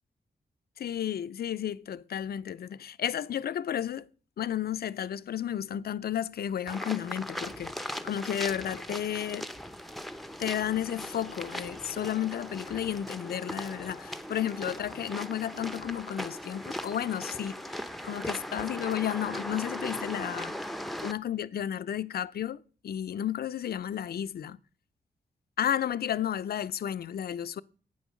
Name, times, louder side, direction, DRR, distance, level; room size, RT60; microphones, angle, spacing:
voice 1, 0.8-4.1 4.4-9.5 10.4-17.6 18.0-20.5 21.0-24.6 25.6-27.6, left 10 dB, 70° left, 0.5 m, -32 dB
sound 1, 6.7-21.1, equal, ahead, 0.7 m, -39 dB
sound 2, 8.2-16.0, right 3 dB, 85° right, 3.2 m, -61 dB
12.5 x 9.2 x 6.2 m
wide cardioid pair, 155°, 17 cm